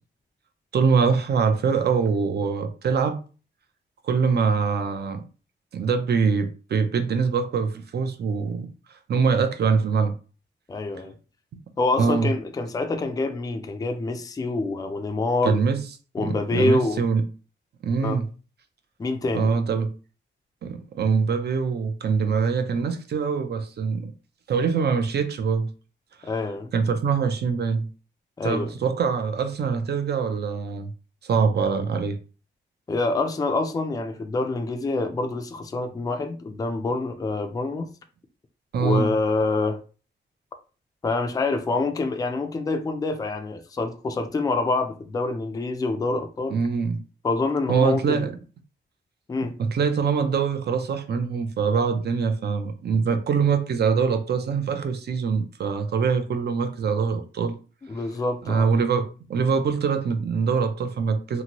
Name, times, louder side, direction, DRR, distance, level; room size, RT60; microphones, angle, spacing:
voice 1, 0.7-3.2 4.0-5.2 5.7-8.7 9.1-10.1 12.0-12.3 15.4-15.8 16.2-17.2 17.8-18.3 19.3-19.9 20.6-24.1 24.5-25.7 26.7-27.9 28.4-30.9 31.2-32.2 38.7-39.1 46.5-47.0 47.7-48.3 49.6-57.6 58.5-61.4, right 5 dB, 55° right, 0.5 m, -23 dB
voice 2, 10.7-11.1 11.8-15.6 16.1-17.0 18.0-18.2 19.0-19.5 26.2-26.7 28.4-28.7 32.9-37.9 38.8-39.8 41.0-46.6 47.2-48.3 49.3-49.6 57.9-58.7, left 3 dB, 20° left, 0.3 m, -26 dB
2.8 x 2.6 x 2.9 m
wide cardioid pair, 140°, 20 cm